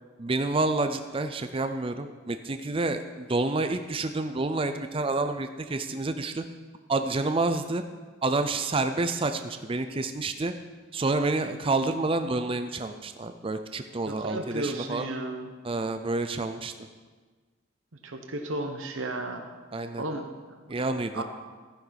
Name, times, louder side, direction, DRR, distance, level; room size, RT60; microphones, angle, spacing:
voice 1, 0.2-6.4 6.9-7.8 8.2-10.5 10.9-15.1 15.6-16.7 19.7-20.0 20.7-21.2, right 2 dB, 30° right, 8 dB, 0.5 m, -28 dB
voice 2, 14.1-15.5 18.0-19.4 20.0-20.9 21.1-21.2, right 2 dB, 85° right, 4 dB, 1.1 m, -34 dB
14.5 x 10.0 x 4.1 m, 1.4 s
head